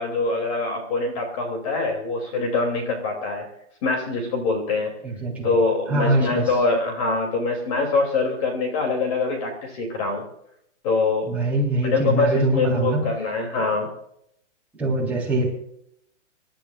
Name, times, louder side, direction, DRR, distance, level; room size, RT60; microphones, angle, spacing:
voice 1, 0.0-3.4 3.8-4.9 5.4-10.2 10.8-11.4 11.8-13.9, left 3 dB, 30° left, 2 dB, 2.9 m, -24 dB
voice 2, 5.0-5.6 5.9-6.5 11.3-13.0 14.8-15.5, right 2 dB, 5° right, -6 dB, 3.8 m, -23 dB
26.5 x 13.0 x 2.5 m, 0.72 s
hypercardioid pair, 170°, 36 cm